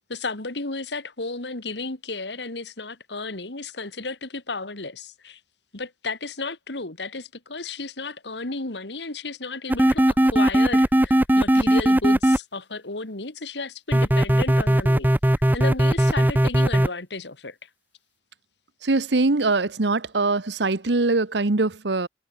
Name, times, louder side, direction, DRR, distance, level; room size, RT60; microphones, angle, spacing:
voice 1, 0.1-5.4 5.7-17.7, left 3 dB, 70° left, 2.5 m, -33 dB
sound 1, 9.7-12.4 13.9-16.9, right 1 dB, 10° right, 0.8 m, -18 dB
voice 2, 18.8-22.1, right 3 dB, 70° right, 1.1 m, -22 dB
head